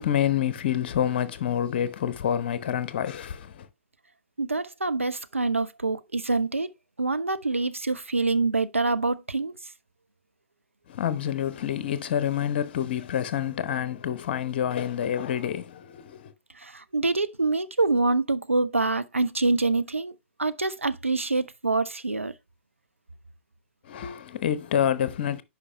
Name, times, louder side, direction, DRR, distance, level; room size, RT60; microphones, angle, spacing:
voice 1, 0.0-3.7 10.9-16.3 23.8-25.4, left 9 dB, 50° left, 1.0 m, -27 dB
voice 2, 4.4-6.7 7.0-9.5 16.6-20.1 20.4-22.3, right 3 dB, 85° right, 0.6 m, -26 dB
9.9 x 5.3 x 3.2 m
figure-of-eight pair, 110°, 7 cm